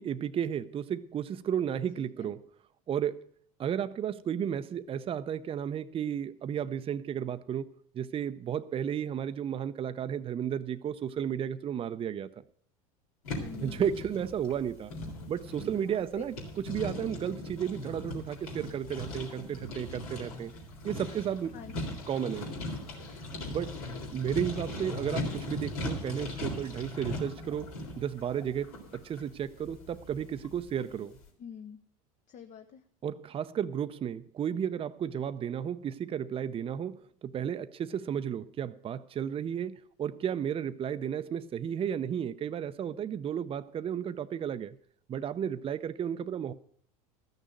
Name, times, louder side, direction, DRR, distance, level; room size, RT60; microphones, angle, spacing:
voice 1, 0.0-2.5 2.9-3.3 3.6-7.7 7.9-12.3 13.6-14.9 15.3-20.5 20.8-21.5 22.1-22.5 23.5-23.8 24.1-31.2 33.0-44.8 45.1-46.5, right 9 dB, 30° right, 0.6 m, -33 dB
voice 2, 1.9-2.3 13.3-13.9 15.8-16.2 21.5-22.0 31.4-31.8 32.3-32.8, left 8 dB, 45° left, 1.0 m, -47 dB
sound 1, 13.3-30.9, left 1 dB, 90° left, 3.8 m, -39 dB
13.5 x 6.5 x 7.8 m
hypercardioid pair, 95°, 18 cm